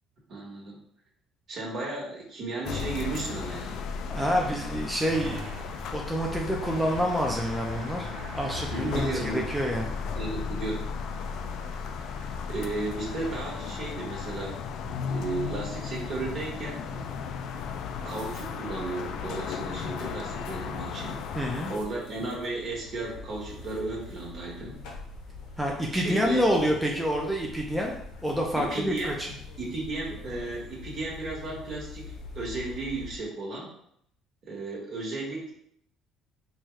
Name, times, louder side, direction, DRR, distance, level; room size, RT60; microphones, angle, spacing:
voice 1, 0.3-0.8 1.5-3.8 8.7-9.5 10.1-10.8 12.5-14.6 15.0-17.1 18.0-21.2 21.7-24.8 25.9-26.4 28.6-29.2 29.6-33.7 34.5-35.5, right 3 dB, 50° right, -3 dB, 1.3 m, -34 dB
sound 1, 2.6-21.8, left 6 dB, 65° left, 0.3 m, -35 dB
voice 2, 4.1-5.5 5.9-8.1 8.3-10.0 21.3-21.7 25.6-29.3, equal, ahead, -1 dB, 0.5 m, -28 dB
Motor vehicle (road) / Engine starting, 5.0-16.7, right 2 dB, 70° right, 0.8 m, -46 dB
sound 2, 15.8-33.2, left 4 dB, 85° left, 0.8 m, -45 dB
4.3 x 2.3 x 3.1 m, 0.70 s
cardioid pair, 125°, 0 cm